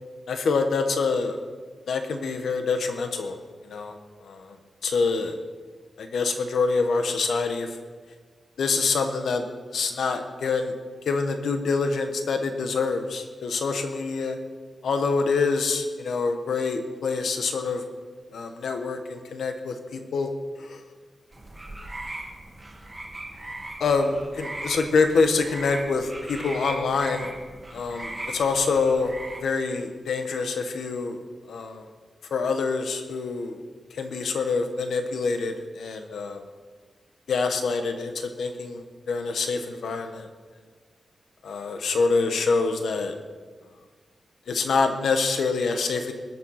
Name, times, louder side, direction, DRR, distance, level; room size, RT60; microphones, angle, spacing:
voice 1, 0.3-1.4 1.9-3.3 3.6-3.9 4.2-4.6 4.8-5.4 6.0-7.8 8.6-9.4 9.7-10.7 11.0-14.4 14.8-17.8 18.3-20.3 20.6-20.8 23.8-27.3 27.7-29.1 29.4-31.2 31.5-31.9 32.3-33.6 33.9-36.4 37.3-40.3 41.4-43.1 44.5-46.1, left 4 dB, 80° left, 6 dB, 1.3 m, -26 dB
sound 1, 21.3-29.4, right 2 dB, 15° right, 1.7 m, -39 dB
20.5 x 7.6 x 5.8 m, 1.5 s
wide cardioid pair, 170°, 0 cm